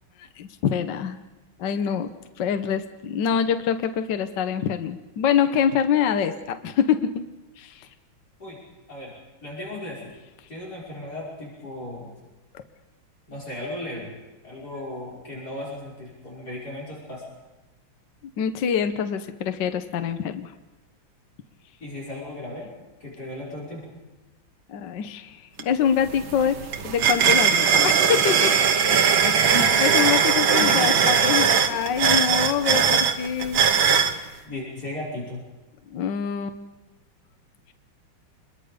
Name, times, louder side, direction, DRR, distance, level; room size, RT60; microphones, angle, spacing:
voice 1, 0.2-1.2 1.6-2.1 2.4-7.1 7.6-7.9 12.5-12.6 18.4-20.5 24.7-26.6 26.8-28.5 29.8-33.6 34.1-34.4 35.9-36.6, left 8 dB, 65° left, 9 dB, 1.5 m, -25 dB
voice 2, 9.4-10.1 10.5-12.1 13.3-14.1 14.4-17.2 21.8-22.7 23.0-23.9 29.2-30.1 30.5-31.2 34.4-35.4, left 1 dB, 45° left, -4 dB, 6.2 m, -35 dB
sound 1, 25.6-25.7 26.0-34.1, right 7 dB, 75° right, 2.1 m, -20 dB
28.5 x 22.0 x 5.1 m, 1.1 s
omnidirectional pair, 2.2 m